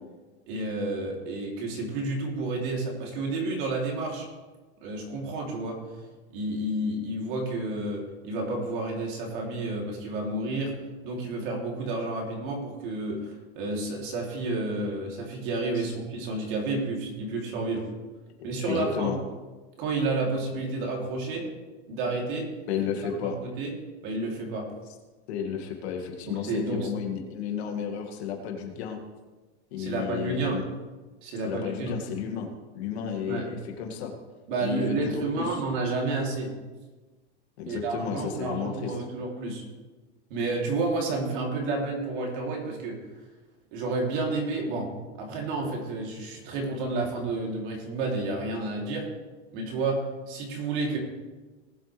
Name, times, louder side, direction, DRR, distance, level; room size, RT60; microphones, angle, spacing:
voice 1, 0.5-4.3 4.8-5.8 6.3-10.7 11.0-17.8 18.4-19.2 19.8-21.5 21.9-22.5 23.2-23.7 24.0-24.7 26.2-26.9 29.8-30.6 31.2-32.0 33.3-33.5 34.5-36.5 37.7-39.6 40.3-43.0 43.7-44.9 45.2-49.1 49.5-51.0, right 2 dB, 50° right, -1 dB, 3.1 m, -30 dB
voice 2, 18.6-19.2 22.7-23.4 25.3-29.0 29.7-30.6 31.4-34.1 34.6-35.6 37.6-39.0, left 7 dB, 70° left, 3 dB, 2.2 m, -32 dB
19.0 x 8.1 x 3.3 m, 1.2 s
supercardioid pair, 175°, 34 cm